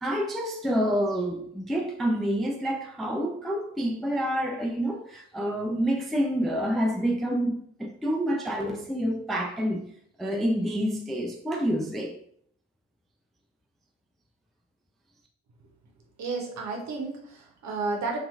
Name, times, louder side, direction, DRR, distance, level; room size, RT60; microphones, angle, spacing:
voice 1, 0.0-9.8 10.2-12.1, equal, ahead, 1 dB, 0.4 m, -28 dB
voice 2, 16.2-18.2, right 3 dB, 55° right, 1 dB, 0.9 m, -32 dB
2.7 x 2.5 x 2.3 m, 0.65 s
hypercardioid pair, 45°, 34 cm